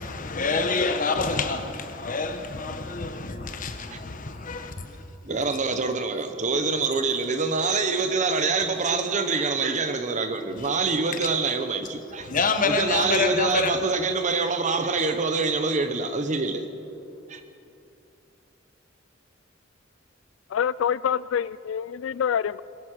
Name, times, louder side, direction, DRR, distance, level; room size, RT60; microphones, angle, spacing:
voice 1, 0.0-5.0 5.3-5.5 10.6-10.7 12.2-13.8, left 4 dB, 45° left, 1.1 m, -27 dB
voice 2, 5.2-12.3 12.6-16.7 17.3-17.4, right 4 dB, 40° right, 1.0 m, -25 dB
voice 3, 20.5-22.6, left 8 dB, 90° left, 0.3 m, -26 dB
21.5 x 13.5 x 4.9 m
head